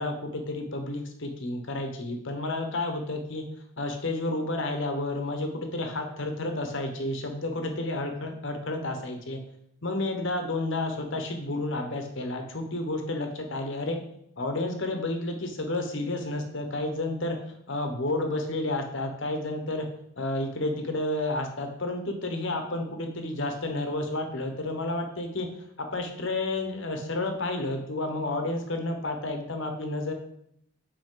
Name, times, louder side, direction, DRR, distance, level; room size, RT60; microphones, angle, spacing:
voice 1, 0.0-3.4 3.8-9.4 9.8-14.0 14.4-17.4 17.7-19.9 20.2-25.5 25.8-30.1, left 2 dB, 55° left, 4 dB, 1.0 m, -31 dB
7.9 x 4.2 x 3.8 m, 0.73 s
head